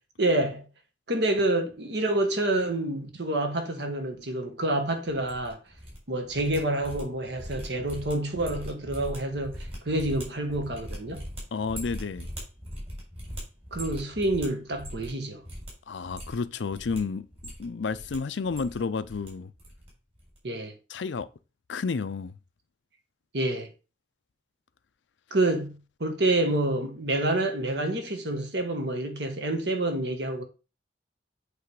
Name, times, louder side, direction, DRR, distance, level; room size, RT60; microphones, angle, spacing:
voice 1, 0.2-0.7 1.1-5.6 6.1-11.3 13.7-15.4 20.4-20.7 23.3-23.7 25.3-30.4, right 1 dB, 70° right, 1.4 m, -28 dB
sound 1, 5.1-6.0 6.2-15.2 15.4-15.7 16.0-17.0 17.3-18.2 18.4-19.3 19.6-19.9 20.1-20.4, equal, 35° right, 3.8 m, -40 dB
voice 2, 11.5-12.3 15.9-19.5 20.9-21.3 21.7-22.3, left 4 dB, 85° left, 0.5 m, -31 dB
8.2 x 3.3 x 4.8 m
head